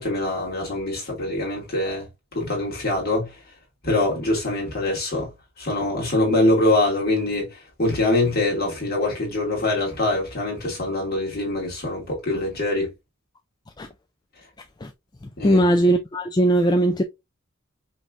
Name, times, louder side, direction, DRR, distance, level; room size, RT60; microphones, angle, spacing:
voice 1, 0.0-2.1 2.3-3.4 3.8-5.3 5.6-12.9 15.4-15.6, left 2 dB, 45° left, 2.3 m, -24 dB
voice 2, 15.4-17.0, right 1 dB, 20° left, 0.4 m, -19 dB
5.3 x 3.3 x 2.5 m
head